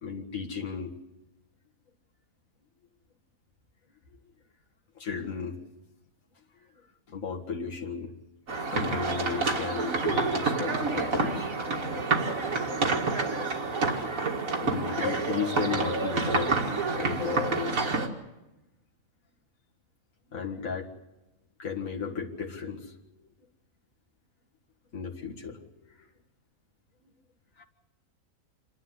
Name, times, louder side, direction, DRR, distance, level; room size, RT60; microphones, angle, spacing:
voice 1, 0.0-1.0 5.0-5.7 6.6-8.1 8.6-11.5 14.6-16.6 16.9-17.8 20.3-20.9 21.6-23.0 23.2-23.3 24.9-26.1 27.6-27.7, left 6 dB, 70° left, 0 dB, 2.2 m, -35 dB
sound 1, 8.5-18.1, right 3 dB, 75° right, 2.3 m, -28 dB
27.5 x 11.5 x 9.7 m, 0.98 s
omnidirectional pair, 1.5 m